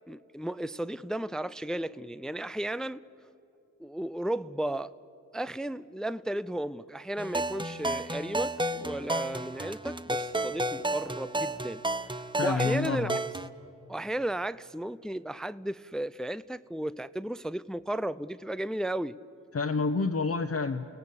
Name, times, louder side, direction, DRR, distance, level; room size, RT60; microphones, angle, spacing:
voice 1, 0.1-3.0 3.8-4.9 5.3-11.8 12.4-13.2 13.9-19.2, right 1 dB, ahead, 0.5 m, -34 dB
sound 1, 7.2-13.5, right 1 dB, 15° right, 0.9 m, -32 dB
voice 2, 12.3-13.2 19.5-20.9, left 4 dB, 45° left, 1.0 m, -28 dB
29.5 x 17.5 x 8.6 m
cardioid pair, 50°, 33 cm